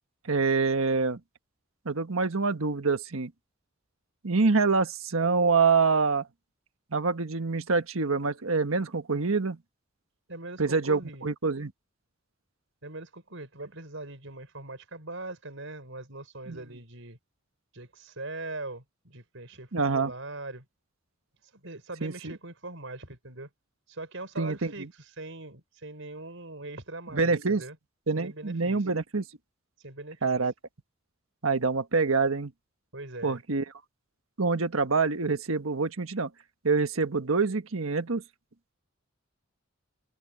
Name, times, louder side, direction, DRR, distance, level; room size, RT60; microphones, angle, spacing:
voice 1, 0.3-1.2 1.8-3.3 4.2-6.3 6.9-9.6 10.6-11.7 16.5-16.6 19.7-20.1 22.0-22.3 24.4-24.9 27.1-27.6 28.1-29.2 30.2-30.5 31.4-32.5 33.2-33.6 34.4-36.3 36.6-38.2, right 4 dB, 85° right, 1.4 m, -26 dB
voice 2, 10.3-11.3 12.8-17.2 17.7-20.6 21.5-23.5 23.9-24.9 25.2-27.8 28.1-28.8 29.8-30.4 32.9-33.4, right 2 dB, 65° right, 6.5 m, -41 dB
head